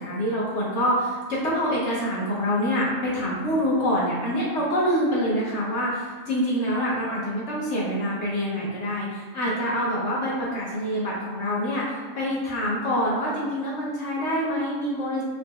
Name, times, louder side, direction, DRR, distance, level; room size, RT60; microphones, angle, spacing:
voice 1, 0.0-15.2, equal, 65° left, -6 dB, 1.1 m, -26 dB
4.3 x 2.1 x 3.2 m, 1.5 s
omnidirectional pair, 1.4 m